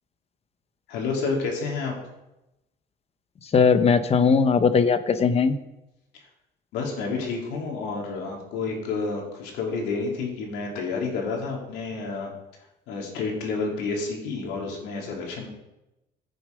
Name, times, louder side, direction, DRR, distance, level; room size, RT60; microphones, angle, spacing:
voice 1, 0.9-1.9 6.7-12.3 12.9-15.5, left 4 dB, 90° left, 0 dB, 3.2 m, -29 dB
voice 2, 3.5-5.6, left 5 dB, 35° left, 10 dB, 1.1 m, -19 dB
15.5 x 7.0 x 5.3 m, 0.94 s
cardioid pair, 110°, 17 cm